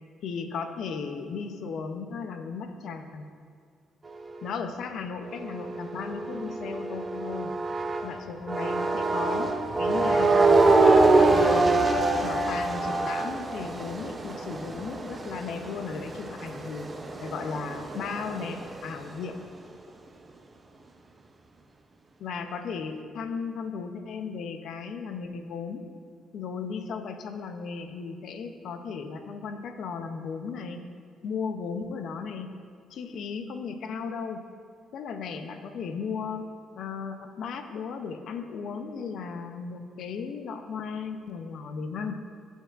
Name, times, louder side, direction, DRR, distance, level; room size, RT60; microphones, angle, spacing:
voice 1, 0.2-3.3 4.4-7.5 8.0-10.7 11.1-11.8 12.2-16.9 17.2-19.4 22.2-25.8 26.3-30.8 31.2-32.5 32.9-34.4 34.9-36.5 36.8-42.1, left 5 dB, 70° left, 7 dB, 0.6 m, -35 dB
sound 1, 5.2-8.1 8.5-18.9, right 3 dB, 30° right, 0.6 m, -25 dB
13.5 x 5.4 x 2.5 m, 2.2 s
cardioid pair, 90°, 0 cm